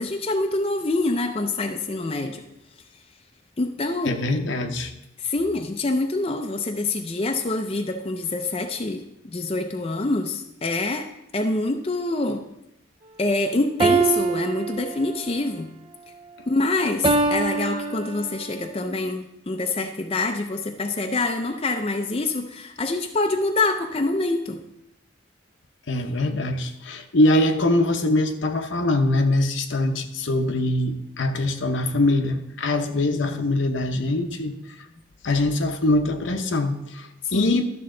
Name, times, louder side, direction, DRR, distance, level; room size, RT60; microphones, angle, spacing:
voice 1, 0.0-2.4 3.6-4.2 5.2-11.1 11.3-12.4 13.2-15.7 16.5-24.6 37.3-37.6, left 2 dB, 30° left, 4 dB, 0.5 m, -26 dB
voice 2, 4.0-4.9 25.9-34.5 35.2-37.7, left 2 dB, 70° left, 6 dB, 0.8 m, -23 dB
sound 1, 13.8-15.4 17.0-18.5, right 4 dB, 25° right, 0.4 m, -24 dB
12.0 x 6.8 x 3.8 m, 0.85 s
head